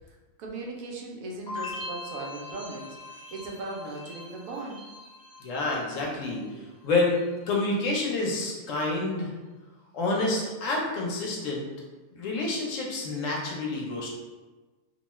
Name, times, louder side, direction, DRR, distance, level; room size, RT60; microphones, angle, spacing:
voice 1, 0.0-4.8 6.5-6.6, right 2 dB, 80° right, -1 dB, 1.0 m, -38 dB
sound 1, 1.5-6.5 6.8-7.4, left 2 dB, 40° left, 0.8 m, -42 dB
voice 2, 5.4-6.4 6.8-9.3 9.9-11.7 12.1-14.1, left 2 dB, 70° left, -2 dB, 1.0 m, -28 dB
2.7 x 2.2 x 3.0 m, 1.2 s
omnidirectional pair, 1.4 m